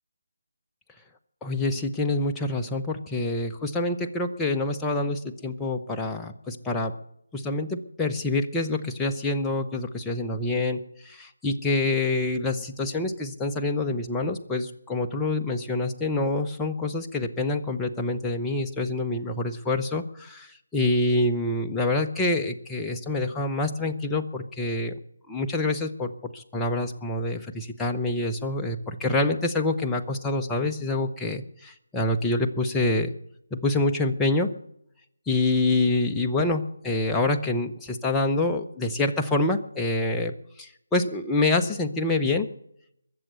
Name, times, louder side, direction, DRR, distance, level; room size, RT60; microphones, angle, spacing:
voice 1, 1.4-6.9 7.3-25.0 25.3-33.1 33.5-34.5 35.3-42.5, left 2 dB, 10° left, 1 dB, 0.9 m, -26 dB
22.5 x 7.5 x 6.8 m, 0.74 s
figure-of-eight pair, 155°, 0 cm